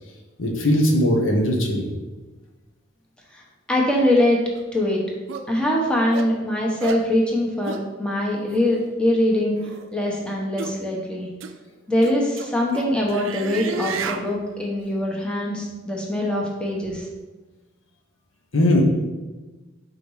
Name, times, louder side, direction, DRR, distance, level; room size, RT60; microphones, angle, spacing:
voice 1, 0.4-1.8 18.5-18.8, left 1 dB, 85° left, 0 dB, 1.1 m, -19 dB
voice 2, 3.7-4.4 4.7-5.0 5.5-9.6 9.9-11.3 11.9-17.1, left 1 dB, 5° left, -3 dB, 1.0 m, -22 dB
sound 1, 4.6-4.7 5.3-5.5 6.1-6.3 6.8-7.1 7.6-7.8 8.5-8.6 9.6-9.8 10.6-10.8 11.4-11.5 12.0-14.3, right 5 dB, 90° right, 0.4 m, -31 dB
5.1 x 4.0 x 4.8 m, 1.2 s
head